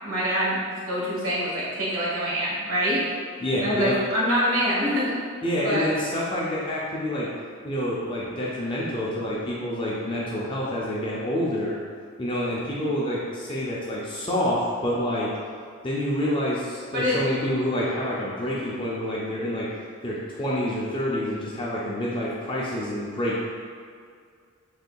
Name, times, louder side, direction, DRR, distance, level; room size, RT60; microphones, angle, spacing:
voice 1, 0.0-3.0 3.6-5.2 5.6-5.8 16.9-17.2, equal, 85° right, -6 dB, 1.2 m, -25 dB
voice 2, 3.4-4.0 5.4-7.3 7.6-11.8 12.2-15.3 15.8-19.7 20.0-23.4, equal, 25° left, -6 dB, 0.4 m, -27 dB
6.4 x 2.6 x 2.2 m, 2.1 s
head